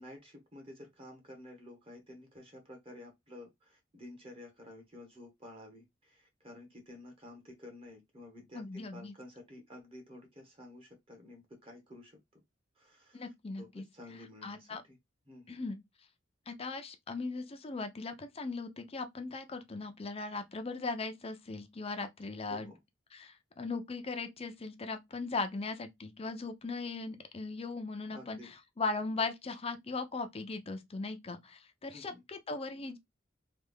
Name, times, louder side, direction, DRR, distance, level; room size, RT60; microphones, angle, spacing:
voice 1, 0.0-12.2 12.8-13.3 13.6-15.0 15.3-15.6 22.5-22.8 28.1-28.5 31.9-32.2, left 1 dB, 30° right, 1.2 m, -51 dB
voice 2, 8.5-9.1 13.1-13.8 14.4-14.8 15.5-15.8 16.5-22.7 23.1-28.4 28.8-33.0, left 3 dB, 30° left, 0.5 m, -38 dB
3.4 x 2.3 x 3.4 m
head